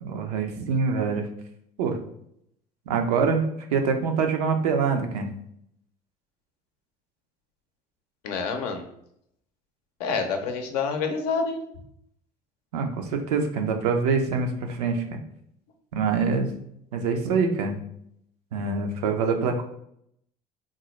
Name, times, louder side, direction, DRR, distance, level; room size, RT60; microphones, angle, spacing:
voice 1, 0.0-1.3 1.8-2.0 2.9-5.3 12.7-15.2 15.9-16.6 16.9-17.8 18.5-19.6, right 5 dB, 85° right, 4 dB, 0.5 m, -25 dB
voice 2, 8.2-8.8 10.0-11.6, left 5 dB, 85° left, 5 dB, 0.5 m, -27 dB
3.6 x 2.0 x 3.0 m, 0.72 s
hypercardioid pair, 75°, 19 cm